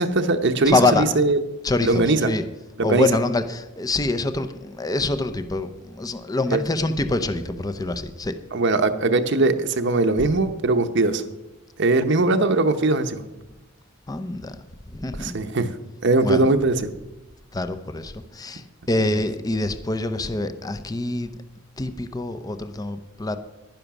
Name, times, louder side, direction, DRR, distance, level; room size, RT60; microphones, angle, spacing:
voice 1, 0.0-1.4 1.8-2.3 2.8-3.1 6.5-6.6 8.5-11.2 11.8-13.2 15.2-15.7 16.0-16.9, right 2 dB, 55° right, 8 dB, 0.8 m, -20 dB
voice 2, 0.7-1.1 1.6-2.4 2.8-8.4 10.2-10.3 14.1-14.6 14.9-15.3 16.2-16.5 17.5-21.3 21.8-23.4, left 2 dB, 15° left, 9 dB, 0.6 m, -25 dB
11.0 x 10.5 x 6.0 m, 0.98 s
head